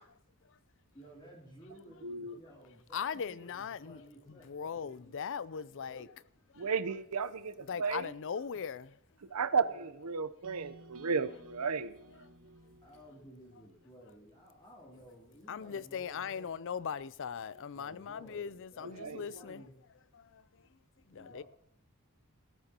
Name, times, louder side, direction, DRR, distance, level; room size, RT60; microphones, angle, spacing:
voice 1, 0.9-5.1 5.7-6.0 9.6-9.9 12.8-16.5 17.7-19.7 21.0-21.4, equal, 20° left, 3.0 m, -55 dB
voice 2, 2.0-2.3 6.6-8.0 9.3-12.0 18.8-19.3, right 5 dB, 85° right, 0.8 m, -34 dB
voice 3, 2.9-4.0 4.3-6.1 6.5-6.6 7.7-9.0 10.7-10.8 12.6-12.7 15.5-19.7 20.1-20.8 21.1-21.4, left 7 dB, 60° left, 0.5 m, -40 dB
sound 1, 10.4-14.6, right 1 dB, 70° right, 1.3 m, -56 dB
21.0 x 14.0 x 2.9 m
head